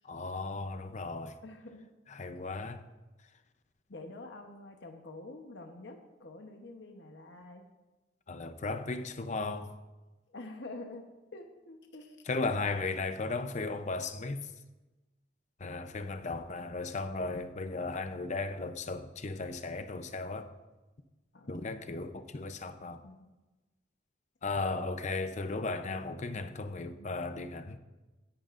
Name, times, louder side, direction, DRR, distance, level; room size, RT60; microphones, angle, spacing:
voice 1, 0.0-1.4 2.1-2.8 8.3-9.7 12.3-14.5 15.6-20.5 21.5-23.0 24.4-27.8, left 3 dB, 40° left, 0.6 m, -36 dB
voice 2, 1.4-1.9 2.3-2.4 3.9-7.7 10.3-12.2 15.6-15.9 21.3-21.6 23.0-23.2 26.9-27.1, left 2 dB, 65° left, 1.0 m, -47 dB
16.5 x 11.0 x 2.5 m
head